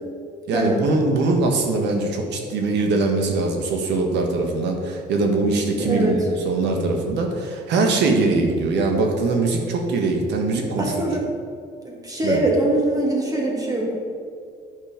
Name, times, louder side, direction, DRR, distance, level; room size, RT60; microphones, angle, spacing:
voice 1, 0.5-11.1 12.2-12.4, right 3 dB, 75° right, 3 dB, 1.4 m, -22 dB
voice 2, 5.8-6.1 10.8-11.2 11.9-14.0, right 1 dB, 20° right, -2 dB, 2.3 m, -22 dB
9.9 x 5.4 x 5.1 m, 2.3 s
cardioid pair, 115°, 18 cm